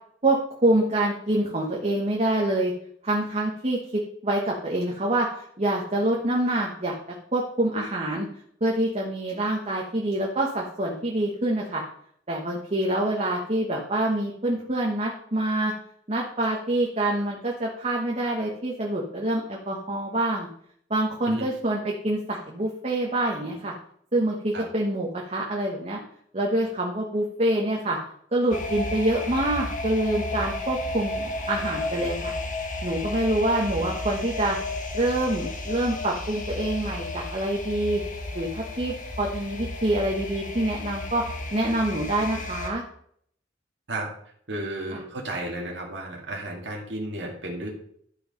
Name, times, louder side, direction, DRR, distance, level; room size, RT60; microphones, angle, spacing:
voice 1, 0.2-2.7 3.0-6.9 7.3-8.3 8.6-11.8 12.3-15.7 16.1-20.5 20.9-23.7 24.1-26.0 26.3-28.0 28.3-32.3 32.8-34.6 34.9-38.0 38.3-41.2 41.5-42.8 44.9-45.0, right 1 dB, 35° right, -1 dB, 1.3 m, -26 dB
sound 1, 28.5-42.7, left 2 dB, 45° left, 1.6 m, -33 dB
voice 2, 44.5-47.7, right 1 dB, 65° right, -1 dB, 2.1 m, -33 dB
12.0 x 4.9 x 5.2 m, 0.65 s
head